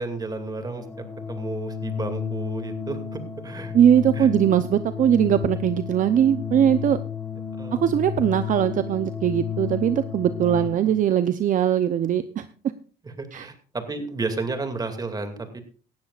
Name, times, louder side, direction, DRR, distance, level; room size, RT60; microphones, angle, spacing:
voice 1, 0.0-3.7 4.1-4.3 7.6-7.9 8.2-8.3 13.0-15.6, right 3 dB, 20° right, 7 dB, 2.4 m, -32 dB
Organ, 0.7-11.0, left 8 dB, 10° left, 1.3 m, -32 dB
voice 2, 3.7-7.0 7.7-12.4 13.3-13.5, right 10 dB, 50° right, 11 dB, 0.7 m, -20 dB
17.5 x 13.5 x 2.5 m, 0.40 s
cardioid pair, 110°, 17 cm